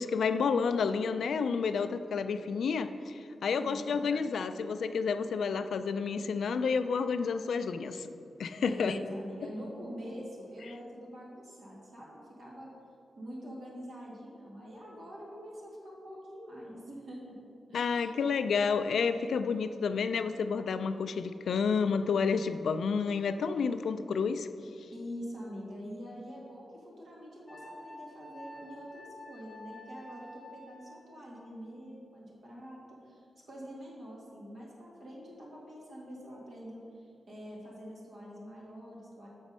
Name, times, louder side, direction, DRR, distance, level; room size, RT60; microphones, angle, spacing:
voice 1, 0.0-8.1 8.4-9.0 10.6-10.7 17.7-24.5, left 5 dB, 70° left, 10 dB, 0.3 m, -30 dB
voice 2, 3.5-4.1 8.6-12.7 13.2-17.4 17.7-17.9 24.9-39.3, equal, 55° right, -5 dB, 2.0 m, -45 dB
Wind instrument woodwind instrument, 27.5-31.3, left 1 dB, 15° left, 1.3 m, -49 dB
7.2 x 5.1 x 5.4 m, 2.5 s
wide cardioid pair, 175°, 0 cm